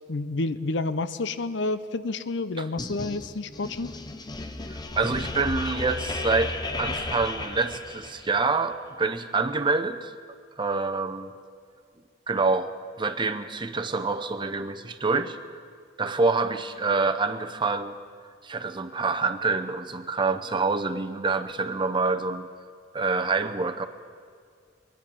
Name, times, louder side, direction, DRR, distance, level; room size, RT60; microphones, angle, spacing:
voice 1, 0.1-3.9, left 3 dB, 70° left, 13 dB, 0.6 m, -29 dB
sound 1, 2.8-8.4, left 2 dB, 25° left, 0.7 m, -34 dB
voice 2, 4.9-10.1 10.6-11.3 12.3-12.7 13.0-15.4 16.0-17.9 18.4-22.5 22.9-23.9, right 4 dB, 25° right, 8 dB, 0.7 m, -26 dB
23.0 x 10.5 x 5.4 m, 2.1 s
head